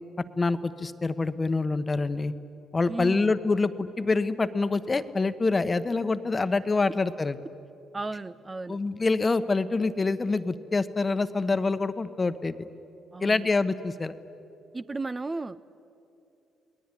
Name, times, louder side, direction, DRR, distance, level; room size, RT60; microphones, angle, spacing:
voice 1, 0.4-2.3 2.7-7.4 8.7-12.7 13.2-14.1, left 3 dB, 25° left, 12 dB, 1.1 m, -26 dB
voice 2, 2.9-3.3 7.9-8.8 13.1-13.5 14.7-15.7, right 3 dB, 25° right, 13 dB, 0.5 m, -34 dB
29.5 x 19.5 x 9.9 m, 2.9 s
cardioid pair, 90°, 0 cm